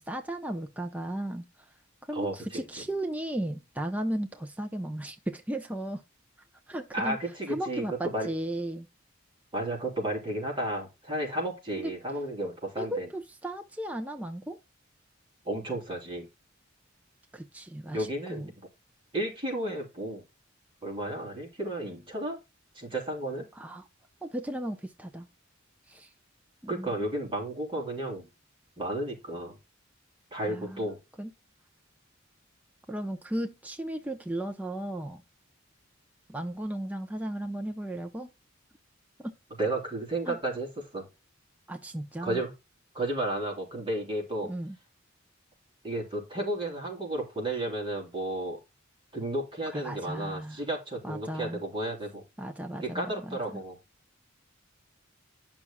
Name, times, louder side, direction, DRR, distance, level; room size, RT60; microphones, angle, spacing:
voice 1, 0.0-1.5 2.0-6.0 6.7-7.2 7.5-8.9 11.8-11.9 12.8-14.6 17.3-18.5 23.5-23.8 24.2-25.3 25.9-26.1 26.6-27.0 30.5-30.9 31.2-31.3 32.9-35.2 36.3-38.3 39.2-39.3 40.3-40.4 41.7-42.4 44.4-44.8 49.7-50.6 51.0-51.6 52.4-53.6, right 1 dB, 10° right, 0.7 m, -35 dB
voice 2, 2.1-2.6 6.9-8.3 9.5-13.1 15.5-16.3 17.9-18.7 19.1-20.2 20.8-22.4 22.8-23.5 26.7-28.3 28.8-29.6 30.3-31.0 39.6-41.1 42.2-42.5 42.9-44.5 45.8-48.6 49.1-52.2 52.8-53.8, right 1 dB, 25° right, 3.6 m, -33 dB
11.0 x 6.1 x 2.3 m
head